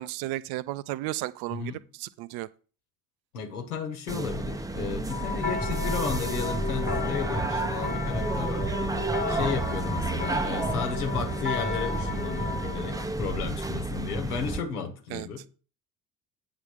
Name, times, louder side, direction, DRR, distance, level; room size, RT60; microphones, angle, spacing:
voice 1, 0.0-1.7 2.0-2.5 15.1-15.3, right 16 dB, 60° right, 0.6 m, -33 dB
voice 2, 1.5-1.8 3.3-15.5, left 6 dB, 85° left, 1.5 m, -34 dB
sound 1, 4.1-14.6, right 2 dB, 10° right, 0.6 m, -31 dB
sound 2, 5.1-13.0, left 5 dB, 20° left, 1.5 m, -34 dB
8.9 x 3.8 x 6.4 m
hypercardioid pair, 60°, 44 cm